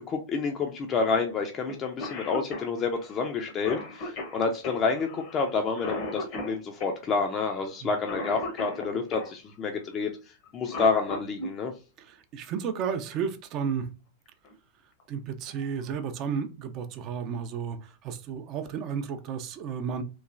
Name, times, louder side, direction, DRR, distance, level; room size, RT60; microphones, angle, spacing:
voice 1, 0.1-10.1 10.5-11.7, left 4 dB, 30° left, 0.5 m, -29 dB
Cough, 1.7-1.8 2.0-9.3 10.4-11.5 13.1-13.2 14.3-14.5 15.0-15.1 15.5-15.9, left 2 dB, 50° left, 0.8 m, -37 dB
voice 2, 12.0-13.9 15.1-20.0, right 7 dB, 45° right, 0.4 m, -33 dB
3.1 x 2.1 x 2.4 m
hypercardioid pair, 95°, 0 cm